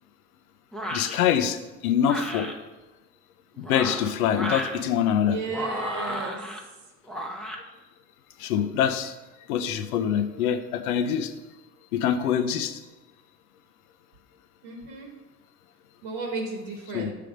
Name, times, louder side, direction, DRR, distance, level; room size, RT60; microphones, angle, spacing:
sound 1, 0.7-1.2 2.0-2.5 3.5-4.8 5.5-6.6 7.1-7.6, equal, ahead, 0.7 m, -33 dB
voice 1, 0.9-1.6 1.8-2.5 3.7-5.4 8.4-9.1 9.5-11.3 11.9-12.8 16.9-17.1, left 9 dB, 85° left, 9 dB, 0.6 m, -24 dB
voice 2, 5.1-6.4 14.6-15.1 16.0-17.1, right 3 dB, 65° right, 2 dB, 1.3 m, -34 dB
5.6 x 3.4 x 5.1 m, 1.1 s
hypercardioid pair, 75°, 43 cm